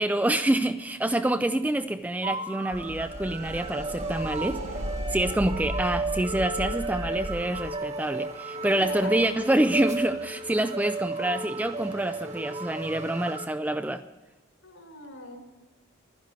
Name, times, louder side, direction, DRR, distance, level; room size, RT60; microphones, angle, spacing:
voice 1, 0.0-4.6 5.1-14.0, right 1 dB, 5° right, 9 dB, 0.4 m, -27 dB
sound 1, 2.2-13.5, right 3 dB, 30° right, 1.3 m, -34 dB
sound 2, 2.7-7.7, equal, 70° right, 1.9 m, -36 dB
voice 2, 4.4-5.0 8.7-9.1 14.6-15.4, left 1 dB, 70° left, 3 dB, 4.3 m, -42 dB
12.0 x 10.5 x 9.3 m, 1.1 s
head